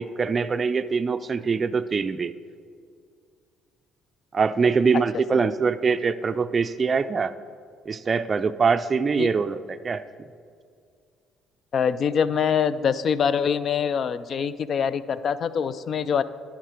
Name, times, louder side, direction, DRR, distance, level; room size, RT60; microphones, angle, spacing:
voice 1, 0.0-2.3 4.3-7.3 7.9-10.0, right 5 dB, 40° right, 9 dB, 0.3 m, -23 dB
voice 2, 11.7-16.2, left 7 dB, 55° left, 15 dB, 0.4 m, -24 dB
10.5 x 5.9 x 4.5 m, 2.2 s
supercardioid pair, 70°, 0 cm